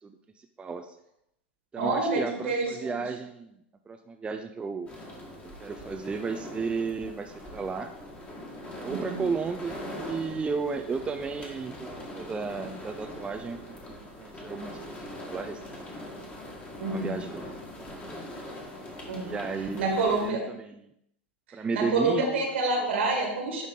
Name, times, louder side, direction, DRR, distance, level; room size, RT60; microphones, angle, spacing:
voice 1, 0.0-0.9 1.7-3.5 3.9-4.9 5.4-7.9 8.8-13.6 13.9-16.0 16.8-18.3 19.2-19.9 20.2-20.9 21.5-22.9, right 4 dB, 15° right, 5 dB, 0.5 m, -34 dB
voice 2, 1.8-3.0 8.9-9.3 16.8-17.2 19.0-19.4 19.8-20.4 21.7-23.7, right 3 dB, 75° right, 1 dB, 2.2 m, -28 dB
sound 1, 4.9-20.3, left 1 dB, 20° left, 1.8 m, -42 dB
10.5 x 3.6 x 3.8 m, 0.77 s
hypercardioid pair, 100°, 6 cm